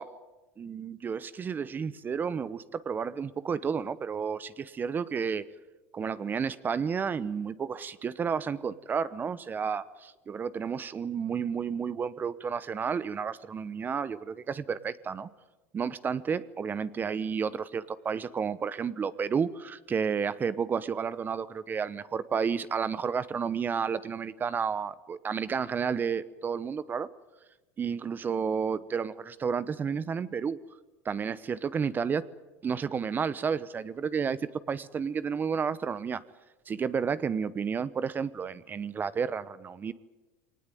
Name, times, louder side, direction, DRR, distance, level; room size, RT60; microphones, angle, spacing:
voice 1, 0.6-5.4 5.9-15.3 15.7-27.1 27.8-30.6 31.0-32.2 32.6-36.2 36.7-39.9, right 6 dB, 30° right, 16 dB, 0.9 m, -31 dB
23.5 x 19.0 x 9.3 m, 1.1 s
supercardioid pair, 100°, 7 cm